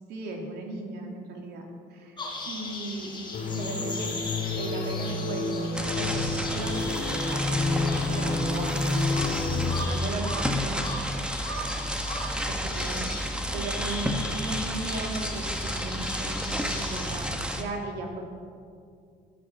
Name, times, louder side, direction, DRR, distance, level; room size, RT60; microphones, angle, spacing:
voice 1, 0.1-1.6 1.9-2.2 2.4-3.1 3.5-4.2 4.6-10.8 12.5-13.1 13.5-18.3, right 2 dB, 75° right, 1 dB, 3.0 m, -36 dB
sound 1, 2.2-17.3, left 2 dB, 30° left, 3.7 m, -39 dB
sound 2, 3.3-9.9, left 3 dB, 60° left, 2.7 m, -29 dB
sound 3, 5.7-17.6, equal, 5° right, 1.3 m, -31 dB
13.0 x 10.5 x 7.6 m, 2.3 s
cardioid pair, 110°, 17 cm